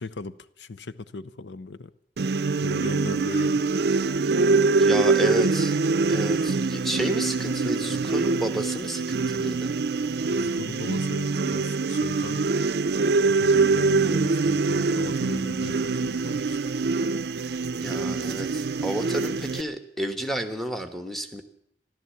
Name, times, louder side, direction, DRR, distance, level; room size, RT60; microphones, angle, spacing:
voice 1, 0.0-1.9 2.6-3.6 10.2-12.4 13.3-16.6, left 3 dB, 80° left, 15 dB, 0.6 m, -38 dB
sound 1, 2.2-19.6, right 3 dB, 65° right, 0.5 m, -24 dB
voice 2, 4.8-5.8 6.1-9.8 17.8-21.4, right 1 dB, ahead, 7 dB, 1.2 m, -31 dB
14.0 x 12.0 x 8.4 m, 0.70 s
head